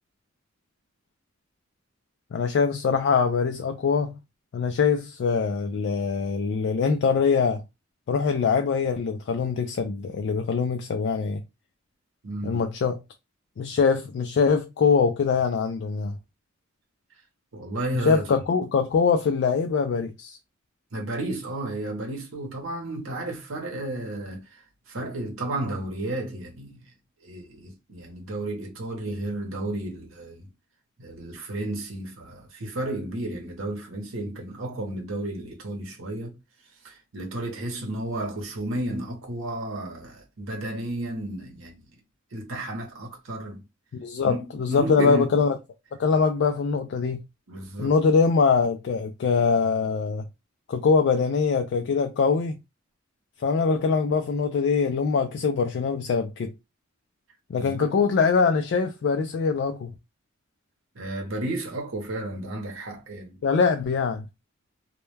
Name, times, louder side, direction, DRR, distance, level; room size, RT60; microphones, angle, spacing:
voice 1, 2.3-4.2 4.5-7.6 8.1-11.4 12.4-13.0 13.6-16.1 18.1-20.4 43.9-45.6 46.0-47.2 47.8-50.2 50.7-52.6 53.4-56.5 57.5-59.9 63.4-64.2, left 5 dB, 60° left, 0.3 m, -23 dB
voice 2, 12.2-12.6 17.5-18.2 20.9-26.8 27.2-30.5 31.0-36.4 36.8-41.8 42.3-43.6 44.2-44.4 44.7-45.3 47.5-48.0 57.5-57.9 60.9-63.4, right 1 dB, 80° right, 0.8 m, -32 dB
2.2 x 2.1 x 3.1 m
head